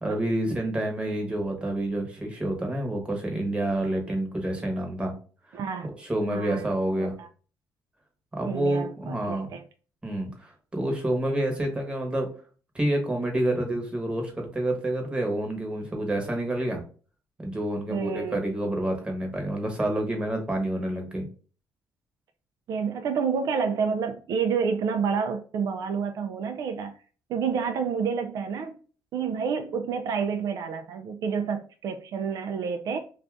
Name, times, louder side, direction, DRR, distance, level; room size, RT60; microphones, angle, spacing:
voice 1, 0.0-5.1 5.5-5.6 6.0-7.1 8.3-9.5 10.0-12.3 12.7-16.8 17.4-21.3, right 1 dB, 15° right, 1.0 m, -28 dB
voice 2, 5.5-5.9 6.3-7.3 8.5-9.6 17.9-18.4 22.7-26.9 27.3-28.8 29.1-33.0, right 6 dB, 65° right, 0.4 m, -29 dB
2.5 x 2.4 x 3.4 m
cardioid pair, 105°, 7 cm